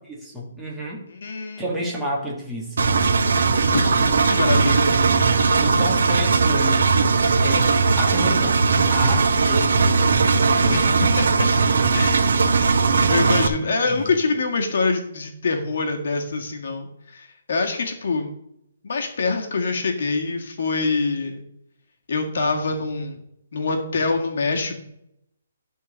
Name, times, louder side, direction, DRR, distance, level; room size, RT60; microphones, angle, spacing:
voice 1, 0.1-1.0 1.6-2.9 4.0-4.1 4.5-4.8 5.6-6.8 7.4-7.7 8.0-8.6 8.9-10.1 10.5-10.8 13.8-14.3, equal, ahead, -5 dB, 1.7 m, -30 dB
voice 2, 1.1-1.8 3.7-3.9 4.3-4.9 10.7-10.8 11.2-11.3 11.9-12.2 13.1-18.3 18.8-21.4 22.1-23.2 23.5-24.8, left 3 dB, 60° left, 3 dB, 1.8 m, -25 dB
Engine, 2.8-13.5, right 4 dB, 70° right, 1.0 m, -18 dB
12.0 x 4.0 x 6.3 m, 0.76 s
hypercardioid pair, 170°, 0 cm